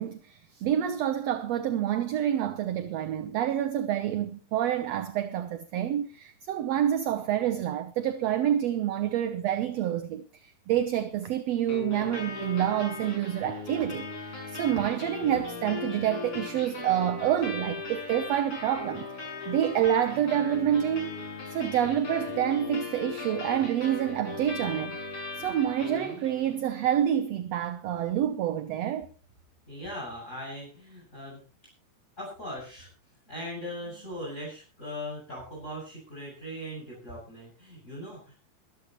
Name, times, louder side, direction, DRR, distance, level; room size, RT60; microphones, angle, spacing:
voice 1, 0.0-21.1 21.5-25.0 25.4-29.1, right 10 dB, 65° right, 1.8 m, -28 dB
sound 1, 11.7-26.7, left 3 dB, 40° left, 7.5 m, -38 dB
voice 2, 29.7-31.4 32.2-32.9 33.3-38.3, equal, 20° left, 8.0 m, -39 dB
21.5 x 13.5 x 3.1 m
omnidirectional pair, 3.7 m